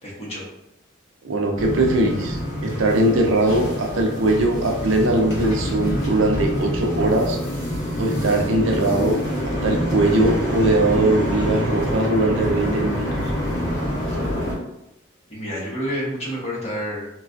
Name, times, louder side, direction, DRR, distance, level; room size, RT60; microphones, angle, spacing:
voice 1, 0.0-0.4 15.3-17.1, equal, 35° left, -6 dB, 0.9 m, -29 dB
voice 2, 1.2-7.4 8.0-9.2 9.4-13.1, right 1 dB, 80° right, 2 dB, 0.5 m, -20 dB
sound 1, 1.6-14.5, equal, 60° left, 1.2 m, -26 dB
3.1 x 2.3 x 2.4 m, 0.87 s
head